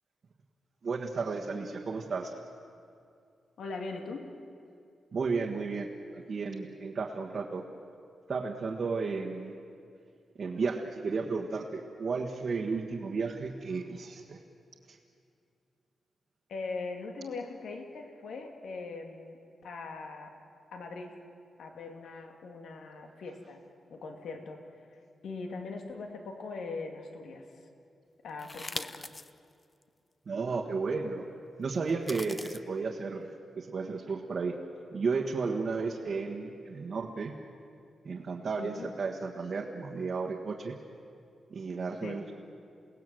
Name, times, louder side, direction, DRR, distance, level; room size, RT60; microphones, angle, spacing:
voice 1, 0.8-2.3 5.1-7.6 8.3-9.5 10.4-14.4 14.9-15.0 30.3-31.2 31.6-33.3 33.6-34.6 34.9-37.3 38.0-40.7 41.5-42.3, right 4 dB, 40° right, -1 dB, 1.4 m, -33 dB
voice 2, 3.6-4.3 16.5-20.3 20.7-21.2 21.6-23.6 23.9-24.6 24.9-27.6 28.2-29.1 38.6-38.9 42.0-42.2, left 3 dB, 75° left, 3 dB, 2.5 m, -41 dB
sound 1, 28.4-29.3 29.8-29.9 31.9-32.6, left 2 dB, 20° left, 0.6 m, -40 dB
28.5 x 18.5 x 7.8 m, 2.5 s
wide cardioid pair, 180°, 0 cm